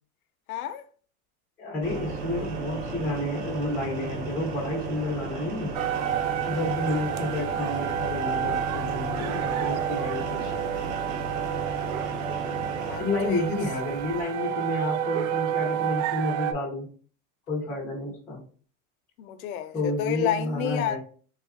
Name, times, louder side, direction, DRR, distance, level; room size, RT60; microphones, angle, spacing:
voice 1, 0.5-0.8 12.5-13.4 19.2-21.0, left 10 dB, 75° left, 0.5 m, -31 dB
voice 2, 1.6-5.7 6.5-10.5 13.0-16.9 17.5-18.4 19.7-21.0, left 2 dB, 5° left, 0.4 m, -30 dB
sound 1, 1.8-14.2, right 3 dB, 50° right, 0.9 m, -34 dB
sound 2, 5.7-16.5, right 10 dB, 70° right, 0.5 m, -30 dB
3.1 x 2.4 x 3.4 m
supercardioid pair, 160°, 43 cm